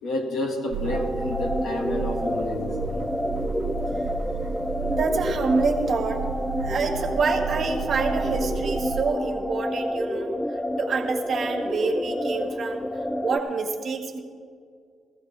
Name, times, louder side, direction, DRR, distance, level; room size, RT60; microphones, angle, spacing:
voice 1, 0.0-3.0, left 1 dB, 65° left, 2 dB, 1.8 m, -30 dB
sound 1, 0.7-9.0, right 5 dB, 75° right, 0.4 m, -33 dB
sound 2, 0.9-13.4, left 1 dB, 5° left, 0.4 m, -29 dB
voice 2, 4.9-6.2 6.6-12.9 13.2-14.2, right 4 dB, 45° right, 2 dB, 1.7 m, -27 dB
16.0 x 14.5 x 3.4 m, 2.2 s
cardioid pair, 130°, 0 cm